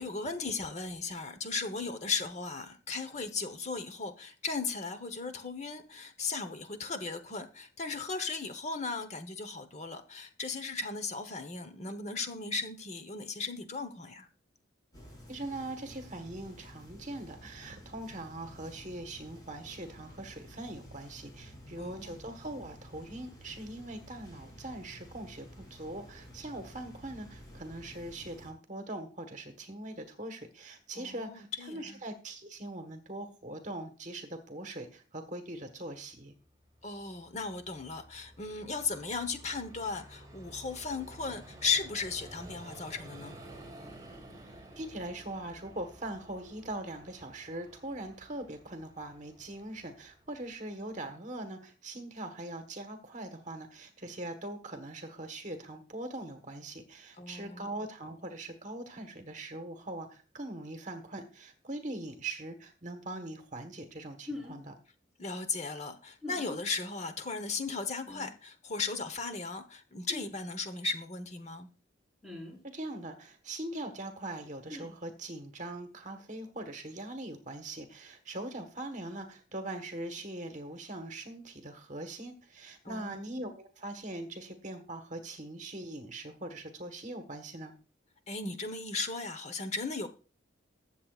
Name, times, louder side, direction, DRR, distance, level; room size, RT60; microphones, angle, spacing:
voice 1, 0.0-14.3 21.8-22.1 30.9-32.0 36.8-43.4 57.2-57.7 65.2-71.7 82.8-83.3 88.3-90.1, left 4 dB, 35° left, 1.1 m, -36 dB
sound 1, 14.9-28.5, equal, 20° left, 6.2 m, -52 dB
voice 2, 15.3-36.3 44.8-64.7 72.7-87.7, right 1 dB, 40° right, 1.4 m, -41 dB
Vehicle, 36.4-51.1, right 1 dB, 20° right, 3.0 m, -52 dB
sound 2, 64.3-64.6 66.2-66.6 68.1-68.3 70.1-70.3 72.2-72.6 74.7-74.9, left 2 dB, 5° right, 4.3 m, -42 dB
21.0 x 7.5 x 2.4 m
head